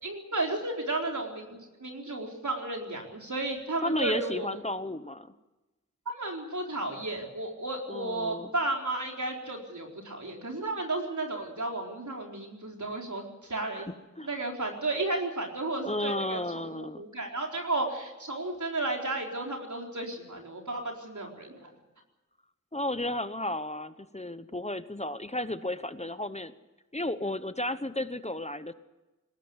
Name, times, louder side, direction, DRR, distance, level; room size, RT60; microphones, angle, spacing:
voice 1, 0.0-4.5 6.1-13.9 14.2-21.7, right 2 dB, 75° right, 1 dB, 4.3 m, -33 dB
voice 2, 3.8-5.3 7.9-8.5 13.7-14.3 15.8-17.0 22.7-26.5 26.9-28.7, left 1 dB, 20° left, 12 dB, 1.0 m, -33 dB
21.0 x 18.0 x 8.1 m, 1.1 s
wide cardioid pair, 55°, 30 cm